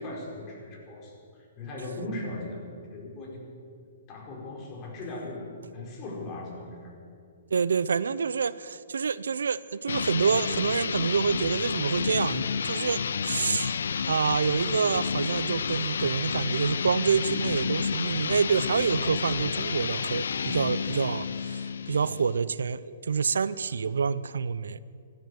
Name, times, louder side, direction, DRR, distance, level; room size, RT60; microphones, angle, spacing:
voice 1, 0.0-3.5 4.1-5.5 5.7-6.9, left 1 dB, 35° left, -1 dB, 4.5 m, -38 dB
voice 2, 7.5-13.7 14.0-24.8, right 6 dB, 75° right, 18 dB, 0.5 m, -27 dB
sound 1, 9.9-22.4, left 6 dB, 75° left, 0.5 m, -30 dB
16.5 x 13.0 x 6.5 m, 2.3 s
hypercardioid pair, 125°, 0 cm